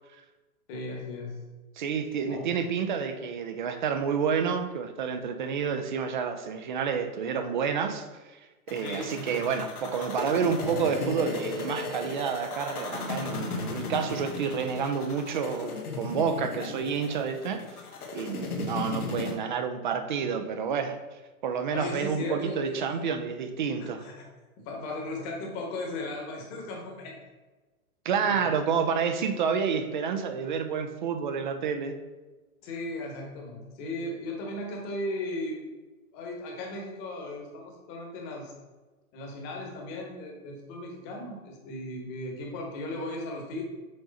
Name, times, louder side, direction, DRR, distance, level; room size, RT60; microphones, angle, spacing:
voice 1, 0.7-1.4 2.3-2.5 8.8-9.5 21.7-22.9 23.8-24.2 24.6-27.2 28.2-28.6 32.6-35.6 36.1-38.5 39.1-43.6, left 2 dB, 20° left, 1 dB, 1.2 m, -37 dB
voice 2, 1.8-8.0 8.7-17.6 18.1-21.0 21.4-24.1 28.0-31.9, right 6 dB, 35° right, 8 dB, 0.5 m, -29 dB
sound 1, 8.7-19.3, left 3 dB, 85° left, 1.5 m, -36 dB
6.5 x 4.6 x 4.0 m, 1.2 s
hypercardioid pair, 155°, 44 cm